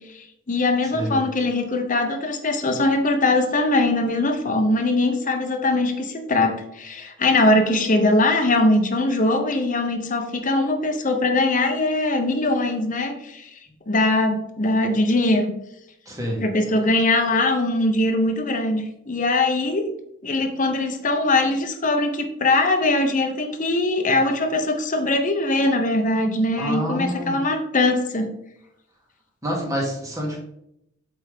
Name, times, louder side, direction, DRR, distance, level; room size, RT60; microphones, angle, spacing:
voice 1, 0.5-13.5 13.9-15.5 16.4-19.9 20.2-28.3, left 2 dB, 40° left, 4 dB, 0.9 m, -21 dB
voice 2, 16.1-16.4 26.6-27.4 29.4-30.4, equal, 15° right, -2 dB, 1.8 m, -27 dB
8.0 x 3.5 x 3.6 m, 0.76 s
head